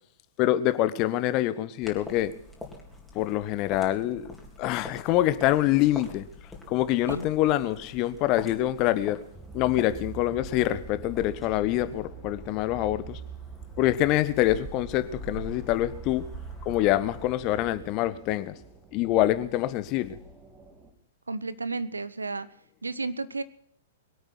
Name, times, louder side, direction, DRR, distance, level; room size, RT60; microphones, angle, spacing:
voice 1, 0.4-2.3 3.1-4.3 4.6-6.2 6.7-9.2 9.5-13.2 13.8-16.3 16.6-18.5 18.9-20.2, left 14 dB, 35° left, 1.1 m, -25 dB
sound 1, 1.8-17.3, left 1 dB, 5° left, 3.6 m, -44 dB
sound 2, 9.3-20.9, right 6 dB, 15° right, 3.1 m, -45 dB
voice 2, 21.3-22.5 22.8-23.4, right 3 dB, 80° right, 0.9 m, -32 dB
23.0 x 8.7 x 6.1 m
figure-of-eight pair, 105°, 0 cm